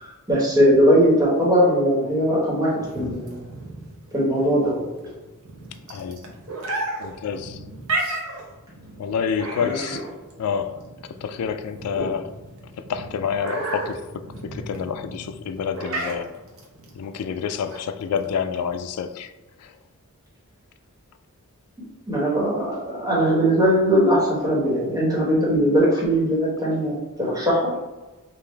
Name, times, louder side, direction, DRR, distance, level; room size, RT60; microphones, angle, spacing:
voice 1, 0.0-3.5 4.1-4.9 9.6-9.7 12.0-12.1 22.1-27.7, equal, 15° right, 1.4 m, -20 dB
sound 1, 2.8-18.7, right 2 dB, 70° right, 0.8 m, -34 dB
voice 2, 5.9-6.2 7.0-7.6 9.0-10.0 10.4-10.8 11.1-12.3 12.8-16.3 16.9-19.3 19.6-19.7, left 7 dB, 90° left, 0.3 m, -28 dB
5.1 x 2.5 x 3.3 m
head